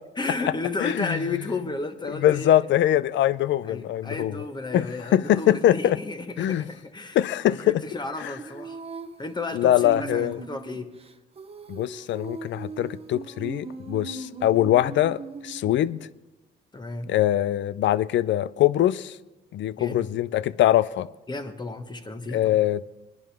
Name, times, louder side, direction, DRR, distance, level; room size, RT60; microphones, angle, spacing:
voice 1, 0.2-2.6 3.6-7.2 7.4-8.8 9.2-10.9 16.7-17.1 19.8-20.1 21.3-22.6, left 3 dB, 20° left, 1.3 m, -33 dB
voice 2, 0.8-1.2 2.1-4.4 4.7-4.9 5.1-6.0 6.4-6.6 7.1-7.8 8.2-8.3 9.5-10.4 11.7-16.1 17.1-19.2 19.5-21.1 22.3-22.8, left 12 dB, 70° left, 0.5 m, -23 dB
Female singing, 8.4-16.1, right 5 dB, 30° right, 0.8 m, -39 dB
21.5 x 11.0 x 3.5 m
cardioid pair, 90°, 20 cm